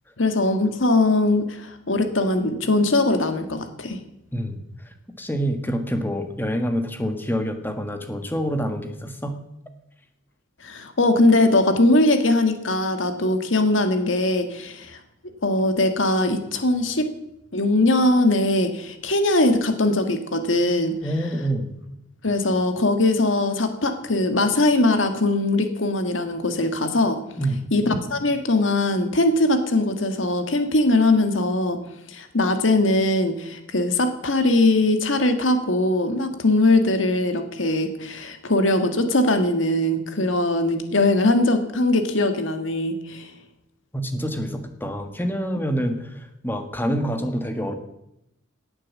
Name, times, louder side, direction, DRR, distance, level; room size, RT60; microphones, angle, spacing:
voice 1, 0.2-4.0 10.6-15.0 15.2-17.1 17.5-21.0 22.2-27.2 27.7-31.8 32.1-43.3, left 2 dB, 75° left, 7 dB, 1.8 m, -21 dB
voice 2, 5.2-9.4 21.0-21.7 27.4-27.6 43.9-47.7, equal, 10° left, 7 dB, 1.6 m, -26 dB
18.0 x 9.1 x 7.4 m, 0.83 s
head